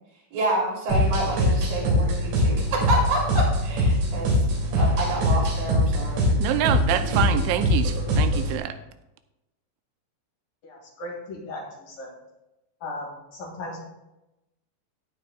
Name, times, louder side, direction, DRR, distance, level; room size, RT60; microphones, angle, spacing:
voice 1, 0.3-6.3, right 2 dB, 55° right, -4 dB, 4.7 m, -28 dB
sound 1, 0.9-8.6, left 1 dB, 70° right, 4.9 m, -22 dB
voice 2, 6.3-8.8, right 11 dB, 90° right, 9 dB, 3.0 m, -26 dB
voice 3, 10.6-12.1 12.8-13.8, left 2 dB, 55° left, -2 dB, 3.4 m, -37 dB
16.0 x 9.4 x 2.3 m, 0.93 s
omnidirectional pair, 5.3 m